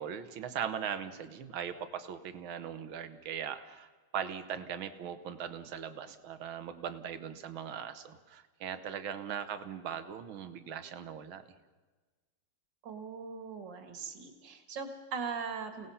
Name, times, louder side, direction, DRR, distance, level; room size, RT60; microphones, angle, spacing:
voice 1, 0.0-3.9 4.1-11.4, right 8 dB, 80° right, 10 dB, 2.0 m, -39 dB
voice 2, 12.8-15.9, right 5 dB, 60° right, 6 dB, 2.5 m, -40 dB
29.5 x 18.0 x 5.6 m, 1.3 s
omnidirectional pair, 2.2 m